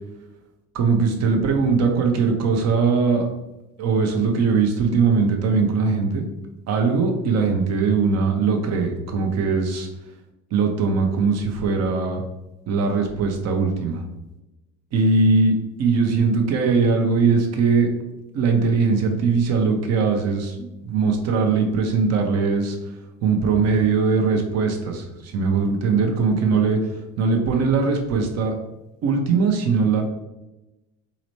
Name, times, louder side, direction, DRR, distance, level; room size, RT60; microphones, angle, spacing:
voice 1, 0.7-3.3 3.8-6.2 6.7-9.9 10.5-12.2 12.7-14.0 14.9-17.9 18.3-22.8 23.2-26.8 27.2-28.5 29.0-30.0, right 4 dB, 55° right, 4 dB, 0.9 m, -20 dB
4.2 x 3.8 x 3.1 m, 0.99 s
cardioid pair, 110°, 30 cm